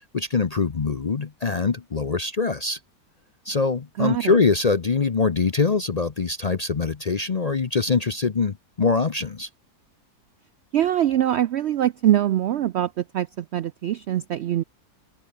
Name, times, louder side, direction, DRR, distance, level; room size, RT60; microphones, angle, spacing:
voice 1, 0.1-2.8 3.5-9.5, left 4 dB, 45° left, 0.5 m, -23 dB
voice 2, 4.0-4.4 10.7-14.6, right 11 dB, 80° right, 0.6 m, -23 dB
omnidirectional pair, 1.7 m